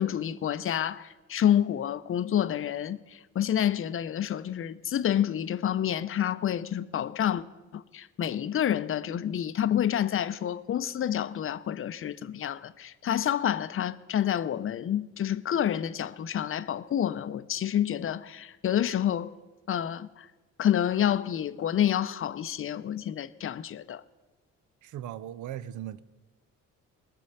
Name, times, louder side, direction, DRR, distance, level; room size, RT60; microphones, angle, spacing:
voice 1, 0.0-7.4 7.7-19.3 19.7-20.3 20.6-24.0, left 10 dB, 45° left, 0.6 m, -28 dB
voice 2, 24.8-26.0, right 11 dB, 75° right, 0.7 m, -38 dB
20.0 x 6.9 x 5.5 m
cardioid pair, 90°, 30 cm